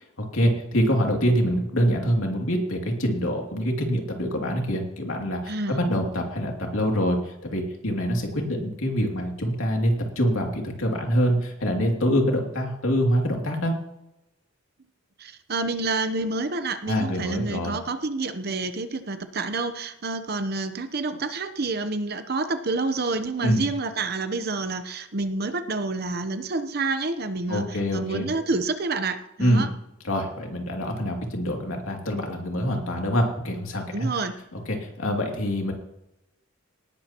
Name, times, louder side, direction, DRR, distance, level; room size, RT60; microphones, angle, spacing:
voice 1, 0.3-13.8 16.9-17.8 23.4-23.6 27.5-28.3 29.4-29.7 30.0-33.8 34.5-35.7, equal, 90° left, 1 dB, 2.7 m, -25 dB
voice 2, 5.5-5.8 15.2-27.6 27.9-29.7 33.9-34.4, right 3 dB, 50° right, 10 dB, 0.9 m, -28 dB
19.0 x 11.5 x 3.0 m, 0.87 s
head